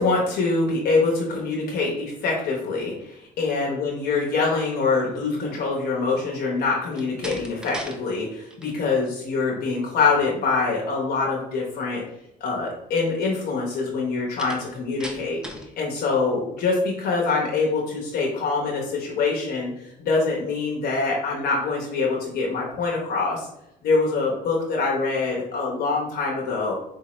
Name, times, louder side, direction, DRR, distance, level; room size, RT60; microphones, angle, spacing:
voice 1, 0.0-12.0 12.4-15.4 15.8-19.7 20.0-23.5 23.8-26.7, left 4 dB, 70° left, -2 dB, 1.0 m, -24 dB
Slam, 6.9-8.0 8.3-8.8 14.4-15.7, equal, 5° right, 0.6 m, -38 dB
4.8 x 2.7 x 3.1 m, 0.82 s
cardioid pair, 110°, 17 cm